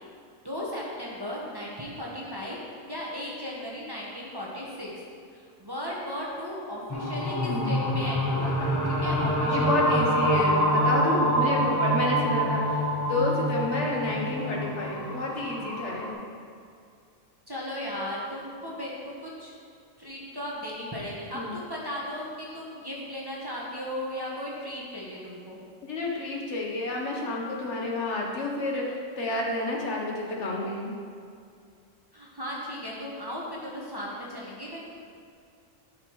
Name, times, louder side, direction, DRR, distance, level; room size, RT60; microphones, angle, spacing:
voice 1, 0.4-2.6 2.9-4.9 5.3-10.2 17.5-19.5 20.0-25.6 32.1-34.8, equal, 20° right, -5 dB, 1.1 m, -36 dB
sound 1, 6.9-16.1, equal, 15° left, 0.8 m, -26 dB
voice 2, 9.5-12.8 13.1-16.2 21.3-21.5 25.8-30.9, left 2 dB, 65° left, -2 dB, 1.3 m, -30 dB
12.0 x 5.4 x 3.1 m, 2.3 s
omnidirectional pair, 1.4 m